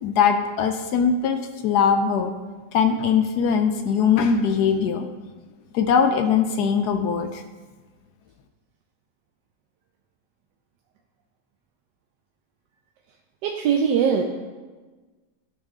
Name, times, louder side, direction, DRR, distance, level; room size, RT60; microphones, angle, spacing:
voice 1, 0.0-1.4 1.6-2.3 2.7-5.0 5.7-7.4, left 6 dB, 75° left, 7 dB, 1.0 m, -21 dB
voice 2, 13.4-14.2, right 7 dB, 80° right, 2 dB, 1.2 m, -21 dB
12.5 x 4.8 x 3.6 m, 1.3 s
omnidirectional pair, 1.9 m